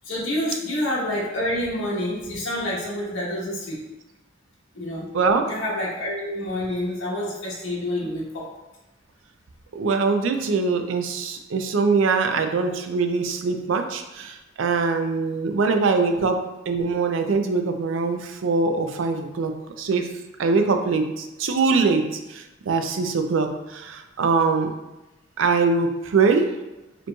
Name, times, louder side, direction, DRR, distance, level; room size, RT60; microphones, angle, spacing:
voice 1, 0.0-3.8 4.7-5.1 5.5-8.5, left 1 dB, 85° left, -5 dB, 1.1 m, -28 dB
voice 2, 5.1-5.5 9.7-16.4 16.7-20.1 20.4-24.7 25.4-26.5, right 4 dB, 70° right, 6 dB, 0.4 m, -23 dB
4.9 x 3.0 x 2.3 m, 1.0 s
head